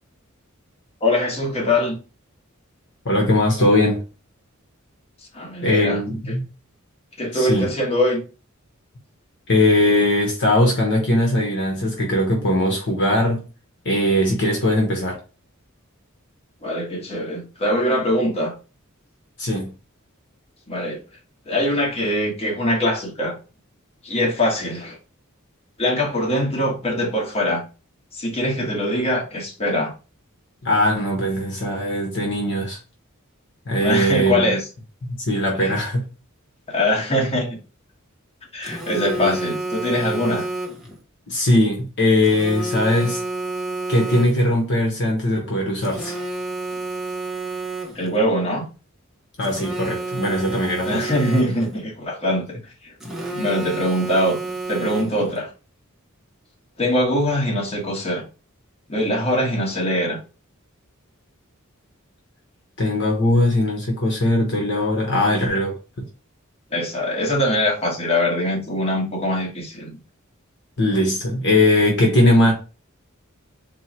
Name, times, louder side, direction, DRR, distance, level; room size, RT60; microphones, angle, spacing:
voice 1, 1.0-2.0 5.3-6.0 6.3-6.4 7.2-8.2 16.6-18.5 20.7-21.0 21.5-23.3 24.0-25.0 25.8-27.6 28.1-29.9 33.8-34.7 35.6-35.8 36.7-37.5 38.5-40.5 47.9-48.7 50.8-52.9 53.3-55.5 56.8-58.2 58.9-60.2 66.7-70.0, left 1 dB, 30° left, 1.3 m, -22 dB
voice 2, 3.0-4.0 5.6-6.4 7.3-7.7 9.5-13.4 13.8-15.2 19.4-19.7 30.6-32.8 33.7-34.4 35.1-36.1 39.2-39.3 41.3-43.2 43.9-46.1 49.4-51.1 62.8-66.1 70.8-72.5, left 1 dB, 55° left, 1.0 m, -20 dB
Telephone, 38.6-41.0 42.2-44.6 45.8-48.2 49.4-51.8 53.0-55.4, right 2 dB, ahead, 0.7 m, -30 dB
4.4 x 2.1 x 4.3 m
head